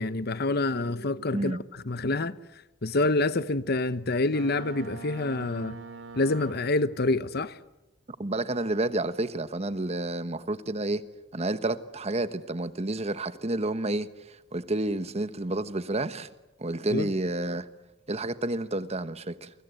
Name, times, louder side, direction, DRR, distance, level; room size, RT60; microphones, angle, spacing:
voice 1, 0.0-1.6 1.9-2.3 2.8-5.8 6.1-7.6 16.9-17.1, left 2 dB, 55° left, 1.0 m, -27 dB
Boat Water vehicle, 4.3-7.0, right 4 dB, 70° right, 2.3 m, -43 dB
voice 2, 8.2-11.0 11.3-16.3 16.6-17.7 18.1-19.5, right 2 dB, 35° right, 1.3 m, -30 dB
30.0 x 23.5 x 8.2 m
head